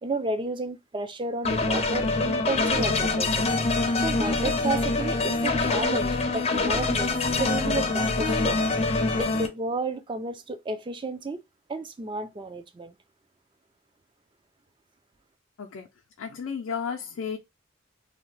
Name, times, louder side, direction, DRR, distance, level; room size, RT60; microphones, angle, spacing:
voice 1, 0.0-3.4 4.0-7.1 7.4-8.6 9.2-11.4 11.7-12.9, right 2 dB, 25° right, 0.4 m, -32 dB
sound 1, 1.4-9.5, left 3 dB, 30° left, 0.5 m, -25 dB
voice 2, 16.2-17.4, left 6 dB, 85° left, 0.5 m, -33 dB
2.8 x 2.1 x 3.1 m
head